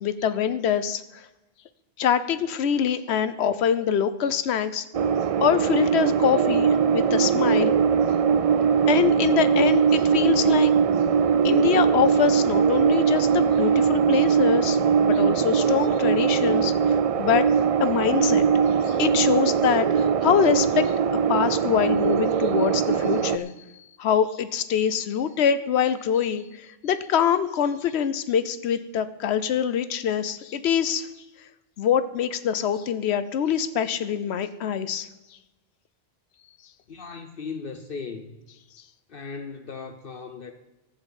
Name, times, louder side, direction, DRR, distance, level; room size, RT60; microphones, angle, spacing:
voice 1, 0.0-1.2 2.0-4.9 5.4-7.7 8.9-10.7 11.4-17.5 17.8-18.5 18.8-20.9 21.3-31.1 31.8-35.1, left 8 dB, 90° left, 13 dB, 1.0 m, -24 dB
sound 1, 4.9-23.4, right 6 dB, 50° right, 0.4 m, -21 dB
voice 2, 36.9-38.4 39.1-40.5, left 5 dB, 60° left, 7 dB, 1.0 m, -37 dB
13.5 x 5.8 x 9.0 m, 1.0 s
omnidirectional pair, 1.1 m